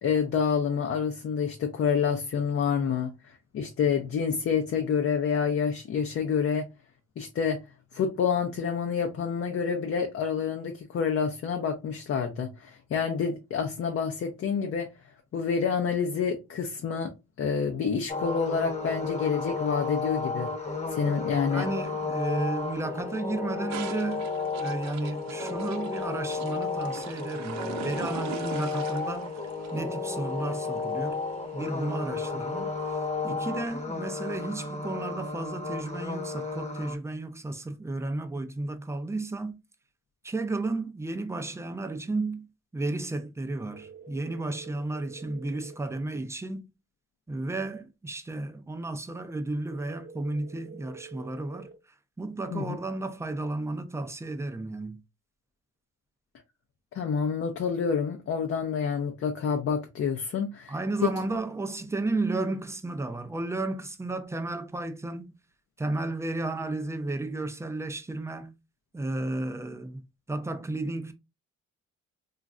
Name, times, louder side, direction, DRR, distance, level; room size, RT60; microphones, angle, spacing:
voice 1, 0.0-6.7 7.2-7.6 7.9-14.9 15.3-17.1 17.4-20.5 20.9-21.7 52.5-52.8 56.9-60.7, left 6 dB, 50° left, 0.6 m, -28 dB
sound 1, 18.1-37.0, left 4 dB, 20° left, 0.9 m, -33 dB
voice 2, 21.5-24.3 24.6-29.3 29.7-31.2 31.5-33.0 33.2-39.6 40.2-42.5 42.7-46.6 47.3-51.7 52.2-55.0 60.7-65.3 65.8-68.5 68.9-70.0 70.3-71.1, right 2 dB, 10° right, 0.4 m, -33 dB
sound 2, 23.7-31.9, right 10 dB, 65° right, 0.5 m, -43 dB
sound 3, 43.7-45.7 49.7-51.7, right 5 dB, 35° right, 0.8 m, -47 dB
3.0 x 2.4 x 2.4 m
cardioid pair, 90°, 30 cm